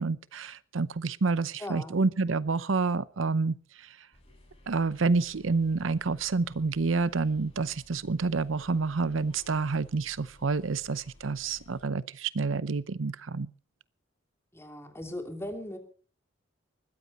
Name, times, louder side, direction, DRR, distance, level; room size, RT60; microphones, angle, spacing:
voice 1, 0.0-3.9 4.7-13.5, right 4 dB, 85° right, 0.7 m, -28 dB
voice 2, 1.6-2.0 14.5-15.8, left 1 dB, 15° left, 3.2 m, -38 dB
sound 1, 4.1-11.9, left 1 dB, 30° left, 6.4 m, -56 dB
20.5 x 14.5 x 4.3 m
head